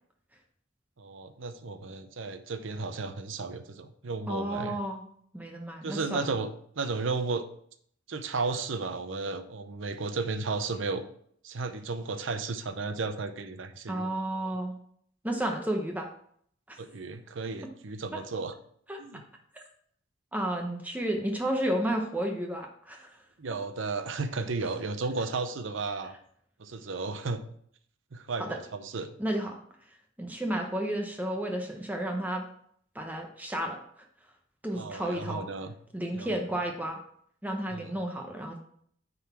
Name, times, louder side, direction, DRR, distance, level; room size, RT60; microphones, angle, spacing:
voice 1, 1.0-4.8 5.8-7.5 8.1-11.0 11.4-14.2 16.8-18.5 19.0-19.2 23.4-26.1 26.6-27.4 28.1-29.1 34.7-35.7 36.1-36.3 37.7-37.9, right 3 dB, 70° right, 10 dB, 0.7 m, -34 dB
voice 2, 4.3-5.0 5.3-6.4 13.9-14.7 15.2-16.1 16.7-16.8 18.1-18.2 18.9-19.0 19.5-19.6 20.3-23.1 28.4-28.6 29.2-29.6 30.2-32.4 32.9-33.8 34.6-35.4 35.9-37.0 37.4-38.6, right 1 dB, 10° right, 3 dB, 0.7 m, -32 dB
9.4 x 4.0 x 4.3 m, 0.64 s
head